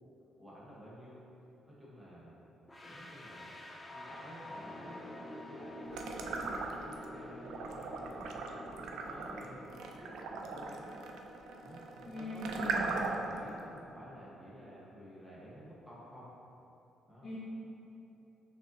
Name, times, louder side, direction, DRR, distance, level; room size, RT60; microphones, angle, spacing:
voice 1, 0.4-1.2 1.7-2.4 2.8-3.5 3.9-5.1 5.5-11.0 11.6-16.3 17.1-17.3, equal, 5° right, -8 dB, 1.0 m, -51 dB
sound 1, 2.7-13.6, left 1 dB, 20° left, 0.4 m, -49 dB
sound 2, 5.9-7.0 7.4-13.4, right 4 dB, 80° right, 0.3 m, -39 dB
voice 2, 12.1-12.9 17.2-17.4, left 1 dB, 45° left, -9 dB, 0.8 m, -40 dB
6.2 x 2.6 x 2.7 m, 3.0 s
cardioid pair, 90°, 0 cm